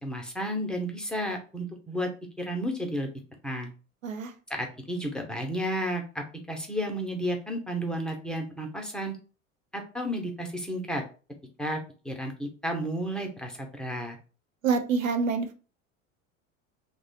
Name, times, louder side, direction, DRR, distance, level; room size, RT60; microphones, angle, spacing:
voice 1, 0.0-2.1 2.4-3.1 3.4-3.7 4.5-9.2 9.7-11.0 11.6-14.2, equal, ahead, 2 dB, 0.8 m, -32 dB
voice 2, 14.6-15.5, right 5 dB, 85° right, 6 dB, 0.6 m, -26 dB
2.9 x 2.3 x 4.0 m, 0.36 s
hypercardioid pair, 75°, 39 cm